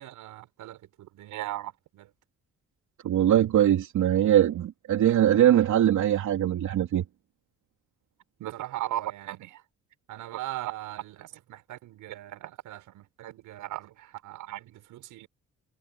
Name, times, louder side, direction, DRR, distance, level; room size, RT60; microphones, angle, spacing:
voice 1, 0.0-2.1 8.4-9.6 10.1-15.3, right 15 dB, 90° right, 6.1 m, -38 dB
voice 2, 3.0-7.0, right 11 dB, 75° right, 3.2 m, -22 dB
cardioid pair, 90°, 30 cm